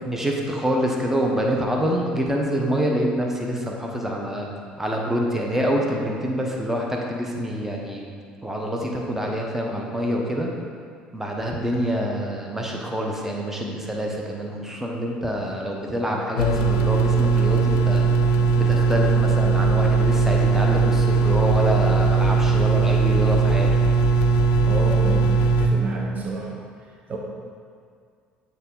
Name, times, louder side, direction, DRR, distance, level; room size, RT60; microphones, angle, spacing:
voice 1, 0.0-4.5 4.8-8.0 8.4-10.5 11.1-18.1 18.6-23.7, equal, 10° right, -1 dB, 1.0 m, -26 dB
sound 1, 16.4-25.7, right 4 dB, 80° left, 0.4 m, -19 dB
voice 2, 24.6-26.6 27.1-27.2, right 3 dB, 40° right, -1 dB, 0.9 m, -30 dB
7.9 x 3.5 x 3.9 m, 2.2 s
hypercardioid pair, 65°, 4 cm